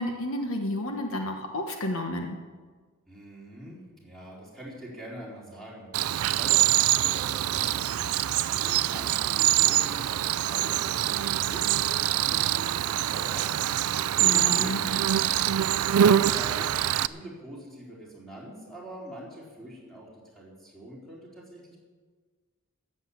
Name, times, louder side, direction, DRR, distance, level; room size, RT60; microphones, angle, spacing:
voice 1, 0.0-2.4 14.2-14.8, left 1 dB, 65° left, 4 dB, 1.2 m, -31 dB
voice 2, 3.1-8.1 8.6-13.7 14.2-21.8, right 1 dB, ahead, -5 dB, 4.0 m, -44 dB
Cricket, 5.9-17.1, right 11 dB, 70° right, 0.4 m, -24 dB
13.5 x 8.0 x 8.5 m, 1.5 s
head